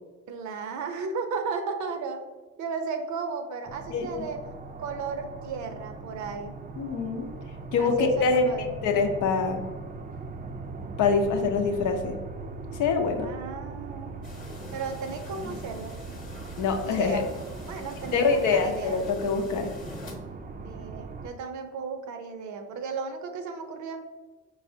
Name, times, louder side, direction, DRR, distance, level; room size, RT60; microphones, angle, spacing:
voice 1, 0.3-2.2 2.6-4.4 4.8-6.6 7.8-8.7 13.1-14.2 14.7-16.0 16.8-17.3 17.6-19.0 20.6-24.0, right 5 dB, 75° right, 6 dB, 0.6 m, -34 dB
sound 1, 3.7-21.3, right 3 dB, 30° right, 0.4 m, -40 dB
voice 2, 6.8-7.3 7.7-8.4 8.8-9.6 11.0-12.2 12.7-13.3 16.6-17.2 18.1-19.7, left 5 dB, 85° left, 5 dB, 0.6 m, -25 dB
sound 2, 14.2-20.2, left 2 dB, 30° left, 0.9 m, -43 dB
4.7 x 3.1 x 2.7 m, 1.3 s
cardioid pair, 90°, 30 cm